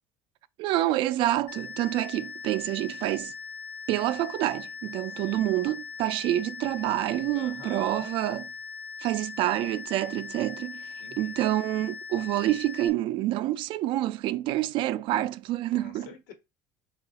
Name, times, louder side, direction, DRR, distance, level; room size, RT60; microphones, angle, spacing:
voice 1, 0.6-3.3 3.9-8.5 9.0-16.1, right 14 dB, 60° right, 0.4 m, -27 dB
sound 1, 1.5-12.9, left 5 dB, 65° left, 0.7 m, -40 dB
voice 2, 5.1-5.5 7.3-8.1 11.0-11.4 15.7-16.3, left 6 dB, 85° left, 1.2 m, -47 dB
3.7 x 2.4 x 4.0 m
cardioid pair, 125°, 10 cm